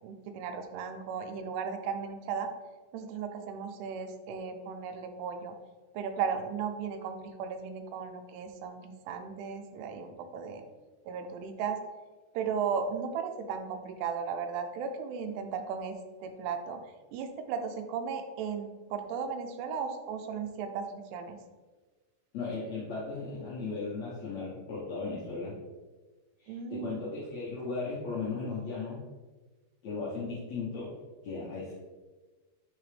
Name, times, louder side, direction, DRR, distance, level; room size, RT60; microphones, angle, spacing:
voice 1, 0.0-2.5 2.9-5.5 5.9-10.6 11.1-11.8 12.3-16.8 17.1-21.4 26.5-26.9, right 6 dB, 90° right, 6 dB, 2.7 m, -36 dB
voice 2, 22.3-25.5 26.4-29.0 29.8-31.0 31.2-31.8, left 4 dB, 75° left, -8 dB, 1.6 m, -36 dB
7.6 x 3.9 x 3.3 m, 1.3 s
omnidirectional pair, 4.7 m